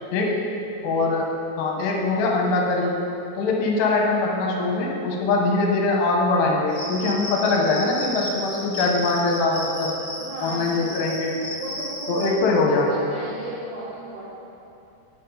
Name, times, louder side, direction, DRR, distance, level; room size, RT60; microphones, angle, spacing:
voice 1, 0.8-1.3 1.6-3.0 3.4-9.9 10.4-11.3 12.1-12.9, left 3 dB, 80° left, -1 dB, 3.0 m, -22 dB
Cricket, 6.7-12.3, left 1 dB, 55° left, 1.6 m, -34 dB
voice 2, 10.2-11.2 11.6-14.3, right 2 dB, 75° right, -8 dB, 1.8 m, -35 dB
8.5 x 6.7 x 4.8 m, 2.9 s
omnidirectional pair, 5.0 m